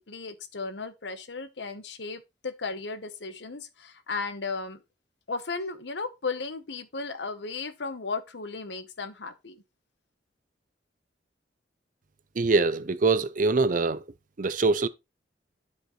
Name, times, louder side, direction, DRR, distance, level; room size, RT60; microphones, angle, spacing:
voice 1, 0.0-4.8 5.3-9.6, left 4 dB, 70° left, 1.0 m, -35 dB
voice 2, 12.4-14.0 14.4-14.9, right 3 dB, 45° right, 0.6 m, -23 dB
11.5 x 5.3 x 3.1 m
head